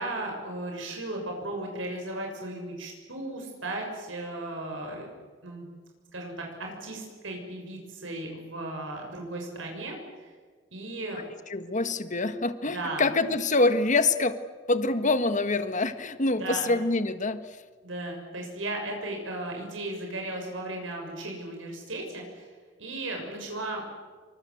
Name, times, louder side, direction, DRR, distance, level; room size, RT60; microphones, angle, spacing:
voice 1, 0.0-5.1 5.4-5.7 6.1-10.3 10.7-11.2 12.6-13.1 16.4-16.7 17.8-22.5 22.8-23.8, right 2 dB, 80° right, 1 dB, 7.0 m, -36 dB
voice 2, 11.5-14.3 14.7-17.4, left 3 dB, 40° left, 11 dB, 1.6 m, -25 dB
27.0 x 25.0 x 8.1 m, 1.5 s
head